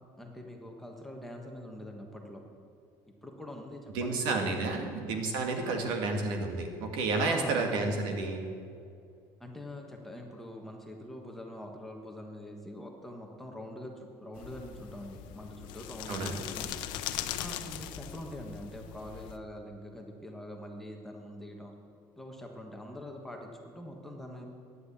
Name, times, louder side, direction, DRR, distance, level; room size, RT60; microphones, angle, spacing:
voice 1, 0.2-2.4 3.1-4.9 5.6-5.9 7.2-8.0 9.4-16.7 17.4-21.7 22.2-24.4, left 1 dB, 5° left, 1 dB, 1.4 m, -44 dB
voice 2, 3.9-8.4 16.1-16.4, right 3 dB, 75° right, 3 dB, 2.0 m, -31 dB
sound 1, 14.4-19.4, left 11 dB, 75° left, 0.8 m, -40 dB
12.0 x 10.0 x 8.5 m, 2.4 s
cardioid pair, 160°, 8 cm